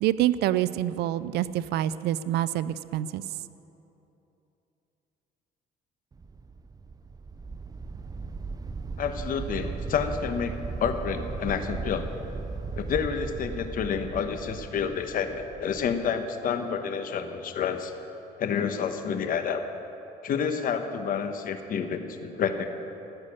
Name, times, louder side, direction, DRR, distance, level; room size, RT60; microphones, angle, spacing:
voice 1, 0.0-3.2, right 13 dB, 80° right, 15 dB, 0.5 m, -26 dB
sound 1, 6.1-16.1, right 4 dB, 20° right, 0.5 m, -37 dB
voice 2, 9.0-12.0 12.8-17.9 18.4-19.6 20.2-22.7, left 7 dB, 55° left, 8 dB, 1.2 m, -29 dB
15.0 x 6.7 x 9.9 m, 3.0 s
cardioid pair, 110°, 17 cm